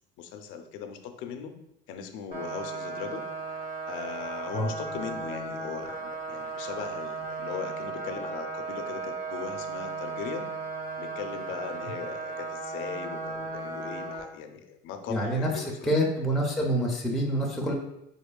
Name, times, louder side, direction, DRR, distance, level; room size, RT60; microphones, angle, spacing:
voice 1, 0.2-1.5 1.9-3.2 3.9-10.5 11.0-16.0, left 7 dB, 70° left, 6 dB, 0.5 m, -39 dB
sound 1, 2.3-14.2, right 3 dB, 35° right, 0.7 m, -36 dB
voice 2, 15.1-17.7, equal, ahead, -1 dB, 0.4 m, -27 dB
4.1 x 3.0 x 2.2 m, 0.83 s
cardioid pair, 125°, 21 cm